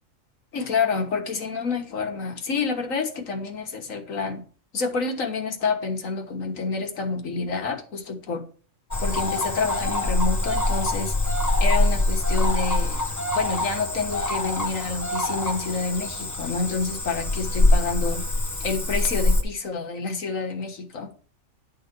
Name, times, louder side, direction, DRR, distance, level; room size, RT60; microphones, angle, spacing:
voice 1, 0.5-4.4 4.7-8.4 9.0-11.1 11.6-13.0 13.3-18.2 18.6-21.1, left 4 dB, 70° left, 4 dB, 1.8 m, -28 dB
Cricket / Frog, 8.9-19.4, left 2 dB, 15° left, 0.9 m, -24 dB
11.0 x 4.0 x 6.9 m, 0.41 s
omnidirectional pair, 1.5 m